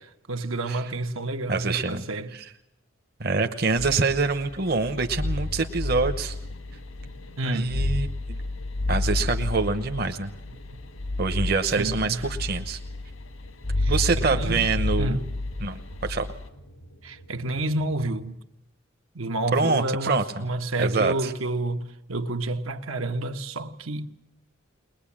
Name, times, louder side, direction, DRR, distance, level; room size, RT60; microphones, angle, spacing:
voice 1, 0.3-2.3 7.4-7.7 11.7-12.3 13.8-14.7 15.0-15.3 17.0-18.4 19.1-24.1, right 2 dB, 85° right, 1.5 m, -29 dB
voice 2, 1.5-2.0 2.3-2.4 3.2-6.4 7.4-8.4 8.9-10.3 11.2-12.8 13.9-15.2 15.6-16.3 19.5-20.4 20.8-21.3, right 4 dB, 50° right, 0.9 m, -25 dB
sound 1, 3.8-18.0, left 2 dB, 85° left, 1.6 m, -31 dB
21.0 x 21.0 x 8.7 m
head